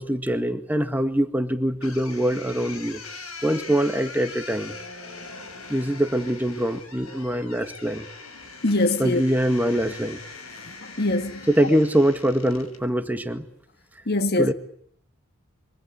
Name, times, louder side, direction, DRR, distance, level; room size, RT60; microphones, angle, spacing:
voice 1, 0.0-3.0 3.4-4.8 5.7-8.1 9.0-10.2 11.5-13.5 14.4-14.5, equal, 10° right, 1.9 m, -23 dB
sound 1, 1.8-12.8, left 4 dB, 85° left, 6.6 m, -41 dB
voice 2, 8.6-9.2 10.8-11.4 14.1-14.5, left 2 dB, 50° left, 1.7 m, -23 dB
27.0 x 24.5 x 8.4 m
head